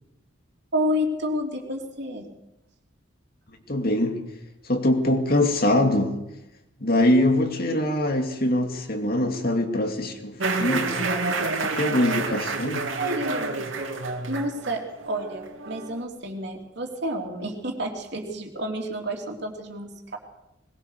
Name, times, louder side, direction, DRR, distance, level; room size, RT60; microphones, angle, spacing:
voice 1, 0.7-2.3 13.0-13.6 14.3-20.2, equal, 60° right, 1 dB, 3.5 m, -30 dB
voice 2, 3.7-4.2 4.6-6.2 6.8-10.9 11.6-12.9, left 1 dB, 50° left, 5 dB, 2.5 m, -23 dB
sound 1, 10.4-16.0, right 3 dB, 85° right, 2.8 m, -29 dB
21.0 x 20.5 x 6.7 m, 0.90 s
head